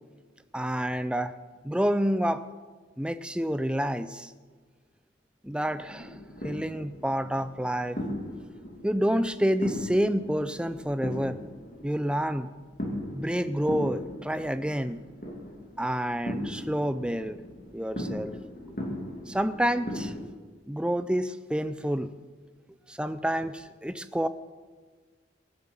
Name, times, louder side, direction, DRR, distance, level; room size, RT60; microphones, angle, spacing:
voice 1, 0.5-1.3 1.6-2.4 3.0-4.3 5.4-6.1 6.4-8.2 8.8-11.4 11.8-12.5 13.1-15.0 15.8-17.4 17.7-18.4 19.3-20.1 20.7-22.1 22.9-24.3, equal, 5° right, 12 dB, 0.5 m, -28 dB
sound 1, 5.7-20.2, left 1 dB, 45° left, 2.8 m, -38 dB
19.5 x 7.7 x 7.3 m, 1.4 s
head